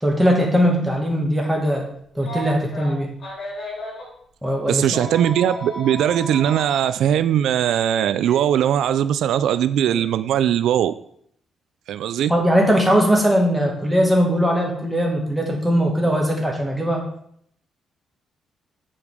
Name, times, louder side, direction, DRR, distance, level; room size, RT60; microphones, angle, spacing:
voice 1, 0.0-1.9 2.2-3.1 4.4-5.0 12.3-17.0, equal, ahead, -1 dB, 2.1 m, -20 dB
Telephone, 2.2-4.1 4.9-6.8 8.2-8.3 9.9-10.1, equal, 75° left, 4.5 m, -33 dB
voice 2, 4.7-10.9 11.9-12.3, right 10 dB, 85° right, 13 dB, 0.4 m, -20 dB
8.2 x 7.1 x 5.0 m, 0.67 s
cardioid pair, 160°, 0 cm